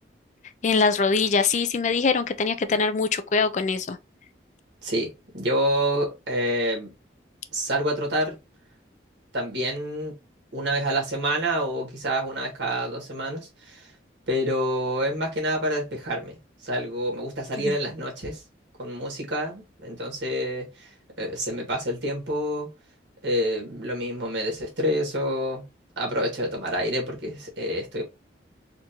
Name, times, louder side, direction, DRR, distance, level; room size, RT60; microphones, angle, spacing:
voice 1, 0.6-4.0 17.6-17.7, left 4 dB, 40° left, 0.4 m, -23 dB
voice 2, 4.8-6.9 7.5-8.4 9.3-10.1 10.5-13.9 14.3-16.4 16.6-18.4 18.8-20.9 21.2-22.7 23.2-25.7 26.0-28.0, equal, 85° right, 1.7 m, -27 dB
4.3 x 2.6 x 2.9 m
head